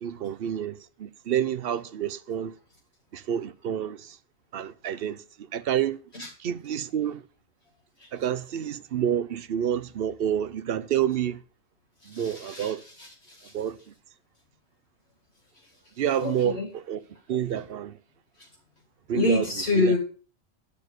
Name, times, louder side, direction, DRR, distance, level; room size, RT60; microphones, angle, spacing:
voice 1, 0.0-2.5 3.1-4.0 4.5-5.2 5.5-6.0 6.4-7.2 8.1-11.4 12.1-12.8 13.5-13.8 16.0-17.0 17.3-17.9 19.1-19.5 19.7-20.0, right 9 dB, 55° right, 0.8 m, -28 dB
voice 2, 12.1-13.5 16.2-16.7 17.5-17.6 19.1-20.0, left 2 dB, 55° left, 2.6 m, -27 dB
11.5 x 4.6 x 8.0 m
omnidirectional pair, 1.3 m